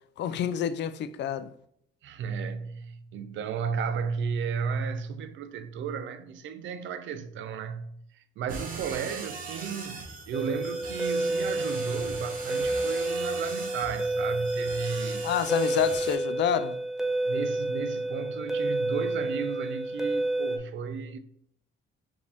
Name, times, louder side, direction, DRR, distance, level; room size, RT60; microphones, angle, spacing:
voice 1, 0.2-1.5 15.2-16.8, left 9 dB, 65° left, 0.4 m, -28 dB
voice 2, 2.0-15.3 17.2-21.2, right 6 dB, 75° right, 0.5 m, -34 dB
sound 1, 8.5-16.1, right 4 dB, 45° right, 1.0 m, -40 dB
sound 2, 10.3-20.6, right 2 dB, ahead, 0.5 m, -30 dB
5.1 x 2.7 x 3.4 m
cardioid pair, 90°, 20 cm